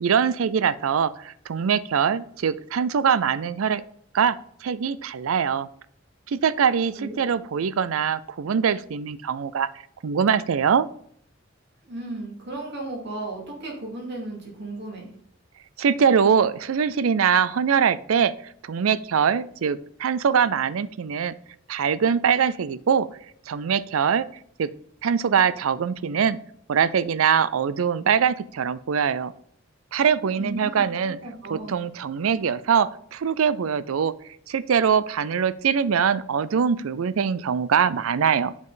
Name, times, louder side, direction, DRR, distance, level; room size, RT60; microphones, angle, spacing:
voice 1, 0.0-3.8 4.1-5.7 6.3-9.7 10.0-10.9 15.8-18.3 18.6-21.3 21.7-23.1 23.5-24.2 24.6-24.7 25.0-26.4 26.7-29.3 29.9-31.2 31.5-34.1 34.5-38.7, right 7 dB, 90° right, 16 dB, 0.4 m, -23 dB
voice 2, 7.0-7.3 11.8-15.1 30.3-31.8, right 2 dB, 55° right, -1 dB, 2.5 m, -35 dB
8.1 x 5.3 x 3.8 m, 0.66 s
head